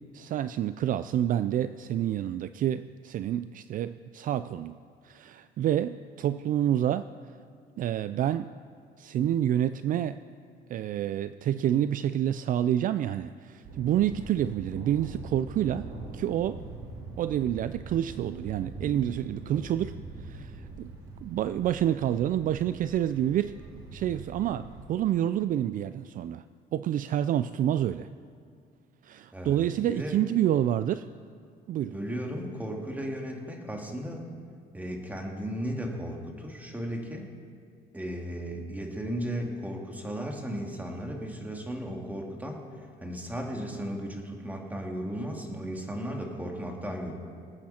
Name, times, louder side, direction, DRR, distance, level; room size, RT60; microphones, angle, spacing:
voice 1, 0.1-4.8 5.0-7.1 7.8-8.5 9.0-10.2 10.7-15.9 16.1-16.6 17.2-20.0 20.2-20.9 21.2-23.6 23.9-26.4 26.7-28.1 29.0-31.1 31.7-31.9, right 11 dB, 55° right, 12 dB, 0.4 m, -28 dB
Thunder, 13.6-24.8, right 3 dB, 80° right, 3.9 m, -43 dB
voice 2, 29.9-30.2 31.9-34.3 34.7-37.3 37.9-42.6 43.0-47.1, equal, 10° right, 1 dB, 2.4 m, -35 dB
26.0 x 8.9 x 4.3 m, 2.2 s
cardioid pair, 110°, 17 cm